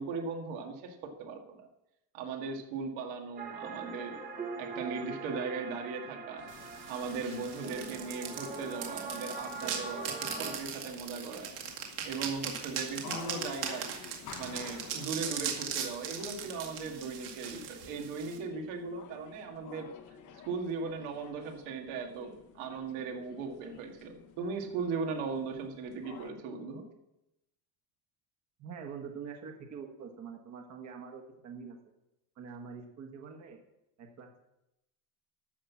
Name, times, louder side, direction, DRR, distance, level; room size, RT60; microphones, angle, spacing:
voice 1, 0.0-1.7 2.1-4.2 4.6-6.5 6.9-11.5 12.0-14.0 14.4-19.9 20.4-26.9, right 4 dB, 75° right, 3 dB, 2.1 m, -38 dB
sound 1, 3.4-10.6, right 4 dB, 20° right, 0.9 m, -42 dB
sound 2, 6.4-26.3, left 8 dB, 40° left, 1.0 m, -51 dB
sound 3, 6.5-18.4, right 8 dB, 55° right, 2.3 m, -39 dB
voice 2, 28.6-31.8 32.4-33.6 34.0-34.4, right 6 dB, 35° right, 3 dB, 1.4 m, -45 dB
12.5 x 5.6 x 7.3 m, 0.90 s
cardioid pair, 170°, 46 cm